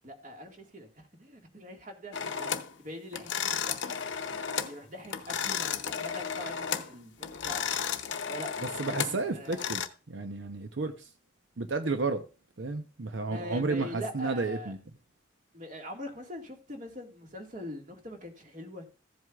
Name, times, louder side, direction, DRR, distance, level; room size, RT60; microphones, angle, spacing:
voice 1, 0.0-2.5 2.8-4.0 4.7-7.8 8.3-8.7 9.0-9.7 13.3-14.7 15.5-18.9, left 1 dB, 40° right, 1.8 m, -43 dB
sound 1, 2.1-2.7 3.1-4.8 5.0-6.9 7.2-9.9, left 7 dB, 80° left, 0.8 m, -33 dB
voice 2, 8.8-9.8 10.1-11.1 11.6-12.2 12.6-14.8, right 3 dB, 75° right, 0.8 m, -32 dB
15.0 x 7.8 x 2.4 m
head